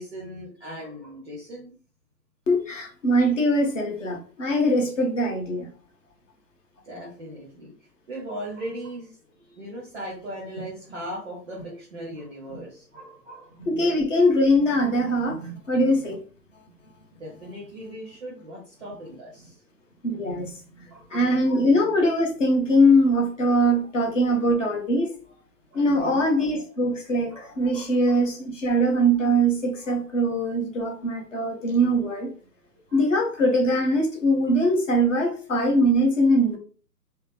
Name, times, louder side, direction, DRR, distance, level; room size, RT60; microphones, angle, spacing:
voice 1, 0.0-1.7 6.8-7.7 8.1-9.2 9.4-13.7 17.1-19.6 20.9-21.6 23.5-23.8 24.2-24.3 25.7-26.2 27.3-27.5 27.7-28.1 32.9-33.0, right 1 dB, ahead, -5 dB, 0.6 m, -39 dB
voice 2, 2.5-5.7 13.6-16.2 20.0-25.1 25.7-32.3 32.9-36.6, equal, 50° left, 2 dB, 1.3 m, -22 dB
4.2 x 2.3 x 3.4 m, 0.41 s
figure-of-eight pair, 130°, 49 cm